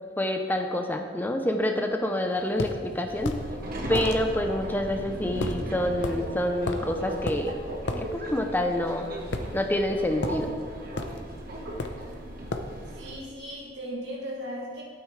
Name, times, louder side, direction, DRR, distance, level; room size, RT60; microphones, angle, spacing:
voice 1, 0.2-3.3 3.9-7.6 8.0-9.1 9.5-10.5, left 1 dB, 10° left, 4 dB, 0.6 m, -27 dB
sound 1, 2.6-2.8 3.3-3.5 4.0-4.2 5.4-5.6 6.0-6.2 6.7-6.9 7.3-7.4 7.9-8.0 9.3-9.9 10.2-10.4 11.0-11.2 11.8-12.1 12.5-12.7, left 2 dB, 80° left, 0.8 m, -32 dB
Subway metro underground, 3.1-13.1, right 1 dB, 55° right, 1.4 m, -36 dB
voice 2, 12.9-14.8, equal, 75° right, -4 dB, 2.8 m, -37 dB
12.5 x 8.9 x 3.2 m, 2.1 s
head